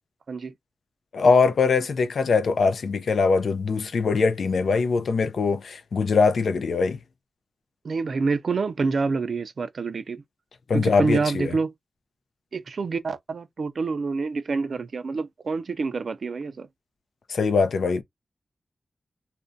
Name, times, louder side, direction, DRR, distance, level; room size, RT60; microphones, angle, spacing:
voice 1, 1.1-7.0 10.7-11.5 17.3-18.0, left 4 dB, 85° left, 0.4 m, -22 dB
voice 2, 7.8-10.2 10.7-11.7 12.5-16.7, right 4 dB, 70° right, 0.4 m, -27 dB
2.4 x 2.1 x 2.5 m
cardioid pair, 65°, 0 cm